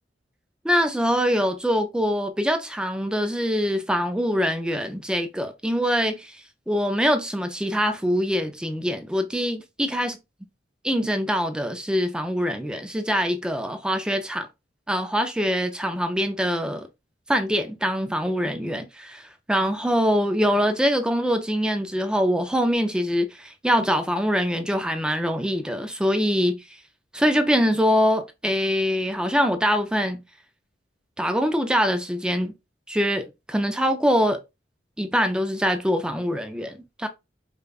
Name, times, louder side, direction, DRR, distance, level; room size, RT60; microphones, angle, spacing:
voice 1, 0.6-10.1 10.8-14.5 14.9-16.9 17.3-26.8 27.1-30.2 31.2-32.5 32.9-34.4 35.0-37.1, equal, 5° right, 0.4 m, -24 dB
5.1 x 2.2 x 2.3 m
head